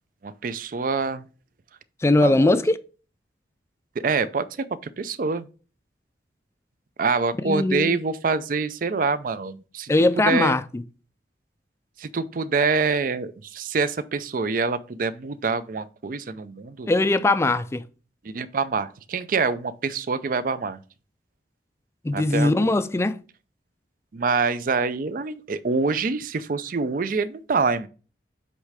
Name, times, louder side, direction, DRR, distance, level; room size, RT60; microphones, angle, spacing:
voice 1, 0.2-1.3 2.2-2.6 4.0-4.5 5.0-5.5 7.0-9.9 10.3-10.6 12.0-16.9 18.2-20.8 22.1-22.7 24.1-27.9, right 4 dB, 50° right, 0.4 m, -25 dB
voice 2, 2.0-2.8 7.4-8.0 9.9-10.8 16.9-17.8 22.0-23.2, left 2 dB, 15° left, 0.3 m, -20 dB
8.2 x 3.2 x 4.8 m
head